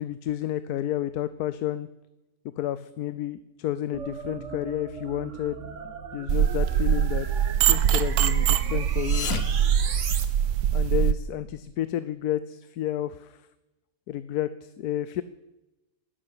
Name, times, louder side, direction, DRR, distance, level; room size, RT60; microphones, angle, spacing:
voice 1, 0.0-1.9 2.6-7.3 7.6-9.3 10.7-13.5 14.1-15.2, left 12 dB, 85° left, 15 dB, 1.2 m, -31 dB
sound 1, 3.9-10.2, right 6 dB, 55° right, 1.5 m, -38 dB
sound 2, 6.3-11.1, right 9 dB, 85° right, 1.2 m, -23 dB
sound 3, 8.8-10.7, left 7 dB, 65° left, 1.4 m, -36 dB
12.0 x 11.0 x 8.8 m, 1.0 s
omnidirectional pair, 1.6 m